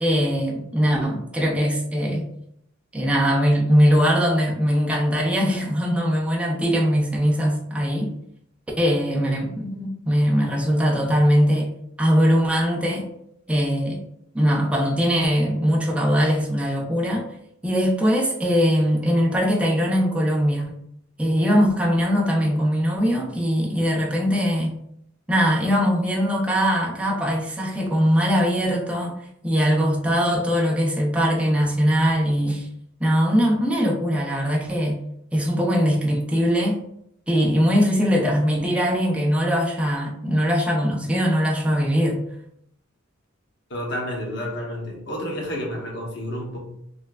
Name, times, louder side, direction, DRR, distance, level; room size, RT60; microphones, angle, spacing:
voice 1, 0.0-2.3 2.9-8.1 8.8-11.7 12.0-13.1 13.5-14.0 14.3-17.3 17.6-20.8 21.2-24.8 25.3-29.1 29.4-32.7 33.0-35.0 35.3-36.8 37.3-42.2, equal, 5° right, -2 dB, 0.5 m, -21 dB
voice 2, 43.7-46.6, equal, 65° left, -1 dB, 1.0 m, -30 dB
3.3 x 2.7 x 2.3 m, 0.74 s
head